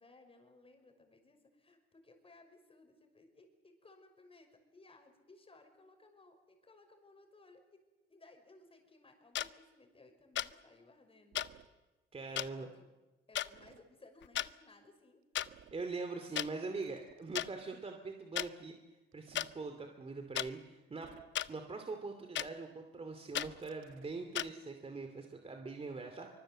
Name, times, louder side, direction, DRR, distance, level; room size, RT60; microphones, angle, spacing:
voice 1, 0.0-7.8 8.1-11.4 12.2-12.9 13.3-15.2, left 2 dB, 30° left, 5 dB, 5.7 m, -61 dB
sound 1, 9.3-9.5 10.4-10.5 11.3-11.5 12.4-12.5 13.3-13.5 14.2-14.5 15.3-15.5 16.4-16.5 17.3-17.5 18.4-18.5 19.3-19.5 20.3-20.5 21.3-21.5 22.3-22.5 23.3-23.5 24.3-24.5, left 12 dB, 70° left, 0.7 m, -35 dB
sound 2, 11.3-11.7 13.5-13.8 15.4-15.9 16.8-17.6 19.1-19.6 20.9-21.5 23.4-24.2, right 10 dB, 85° right, 1.6 m, -60 dB
voice 2, 12.1-12.7 15.7-18.8 19.1-21.1 21.5-26.3, right 3 dB, 30° right, 5 dB, 2.6 m, -42 dB
24.5 x 23.0 x 7.8 m, 1.2 s
cardioid pair, 90°, 20 cm